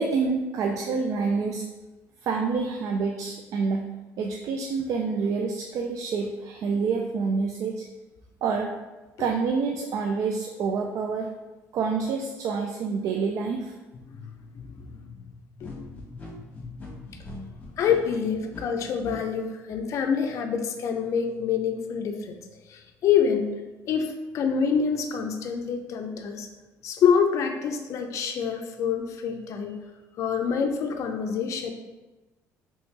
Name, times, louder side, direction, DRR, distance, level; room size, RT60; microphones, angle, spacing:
voice 1, 0.0-1.6 2.2-3.8 4.2-7.8 8.4-8.7 9.2-11.3 11.7-13.8, right 4 dB, 60° right, 2 dB, 0.3 m, -27 dB
voice 2, 14.5-15.2 15.6-17.0 17.8-22.4 22.7-23.6 23.9-26.5 26.8-29.8 30.2-31.7, left 6 dB, 55° left, 5 dB, 0.4 m, -27 dB
sound 1, 15.6-19.1, left 2 dB, 25° left, 1.1 m, -42 dB
3.1 x 3.0 x 3.2 m, 1.1 s
cardioid pair, 110°, 6 cm